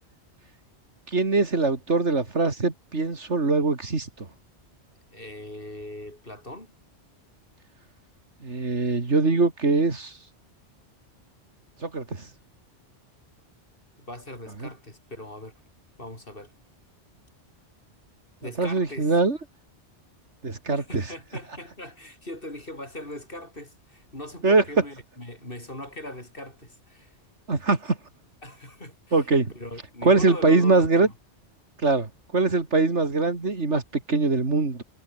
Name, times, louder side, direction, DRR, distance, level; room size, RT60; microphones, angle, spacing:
voice 1, 1.1-4.3 8.4-10.2 11.8-12.3 18.6-19.4 20.4-21.0 24.4-24.6 27.5-28.0 29.1-29.5 30.0-31.1 31.8-34.8, right 3 dB, 75° right, 3.2 m, -22 dB
voice 2, 5.1-6.7 14.0-15.5 16.0-16.5 18.4-19.1 20.7-27.2 28.4-31.1, left 1 dB, 50° left, 6.8 m, -40 dB
omnidirectional pair, 1.2 m